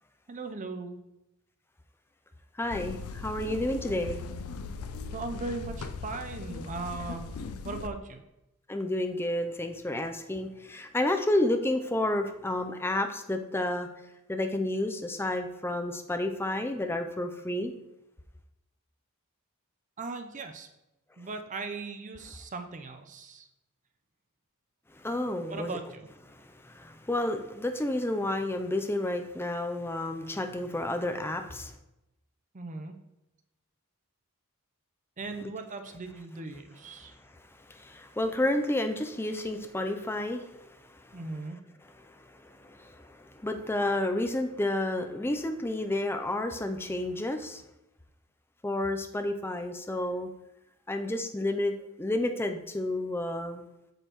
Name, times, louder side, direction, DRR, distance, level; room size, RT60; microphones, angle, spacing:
voice 1, 0.3-1.0 5.1-7.2 7.6-8.2 20.0-20.7 21.2-23.4 25.5-26.1 32.5-32.9 35.2-37.1 41.1-41.6, right 3 dB, 35° right, 6 dB, 0.6 m, -38 dB
voice 2, 2.6-4.2 8.7-13.9 14.3-17.7 25.0-25.8 26.7-31.7 35.4-35.5 37.7-40.5 42.6-43.2 43.4-47.6 48.6-50.3 50.9-53.6, left 1 dB, 10° left, 6 dB, 0.4 m, -30 dB
sound 1, 2.7-7.9, left 4 dB, 70° left, 0.5 m, -39 dB
7.9 x 6.4 x 3.0 m, 0.93 s
head